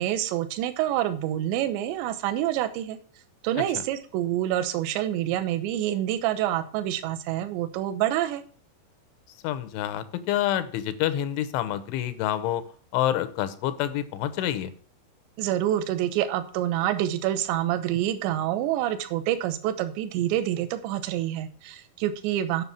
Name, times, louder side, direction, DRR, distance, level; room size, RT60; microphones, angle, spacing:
voice 1, 0.0-3.0 3.4-8.4 15.4-22.6, right 12 dB, 80° right, 9 dB, 3.1 m, -27 dB
voice 2, 9.4-12.6 12.9-14.7, left 12 dB, 85° left, 13 dB, 3.3 m, -27 dB
9.6 x 5.9 x 7.0 m, 0.44 s
omnidirectional pair, 5.3 m